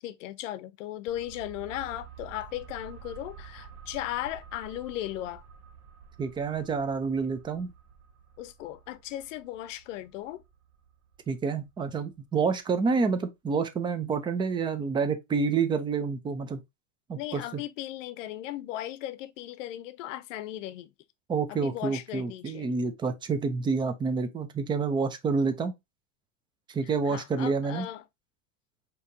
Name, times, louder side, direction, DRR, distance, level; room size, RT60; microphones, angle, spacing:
voice 1, 0.0-5.4 8.4-10.4 17.2-20.9 21.5-22.7 27.1-28.0, left 14 dB, 80° left, 0.6 m, -37 dB
sound 1, 1.1-12.4 12.7-12.8, right 7 dB, 65° right, 0.8 m, -50 dB
voice 2, 6.2-7.7 11.3-16.6 17.1-17.6 21.3-25.7 26.7-27.9, right 5 dB, 15° right, 0.4 m, -28 dB
4.9 x 2.9 x 2.7 m
supercardioid pair, 135°, 37 cm